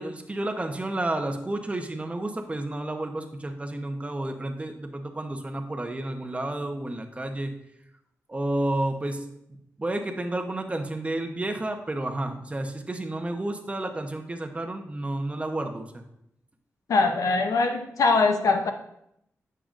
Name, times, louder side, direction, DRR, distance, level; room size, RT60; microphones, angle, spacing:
voice 1, 0.0-7.5 8.3-9.3 9.8-16.0, right 1 dB, 25° right, 4 dB, 0.9 m, -31 dB
voice 2, 16.9-18.7, left 3 dB, 85° left, 6 dB, 0.7 m, -22 dB
8.8 x 6.7 x 2.5 m, 0.77 s
cardioid pair, 80°, 6 cm